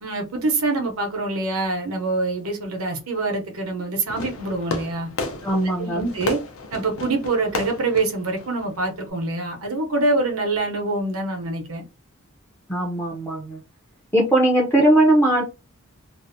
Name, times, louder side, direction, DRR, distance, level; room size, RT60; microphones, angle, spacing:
voice 1, 0.0-5.1 5.8-6.4 6.7-11.8, right 2 dB, 85° right, 0.8 m, -25 dB
Fireworks, 4.1-9.1, left 3 dB, 70° left, 0.5 m, -33 dB
voice 2, 5.4-6.1 12.7-13.6 14.1-15.4, right 1 dB, 10° left, 0.4 m, -19 dB
2.6 x 2.0 x 2.5 m
head